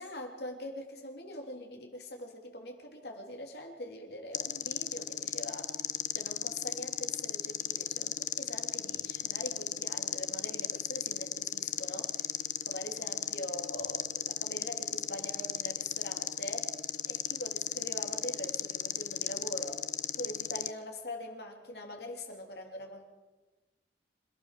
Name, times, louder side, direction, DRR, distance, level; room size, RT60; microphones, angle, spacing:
voice 1, 0.0-5.7 6.1-12.3 12.7-16.7 17.1-19.8 20.1-23.1, left 1 dB, 65° left, 2 dB, 3.4 m, -43 dB
sound 1, 4.3-20.7, left 11 dB, 45° left, 0.7 m, -35 dB
26.5 x 15.0 x 6.7 m, 1.2 s
head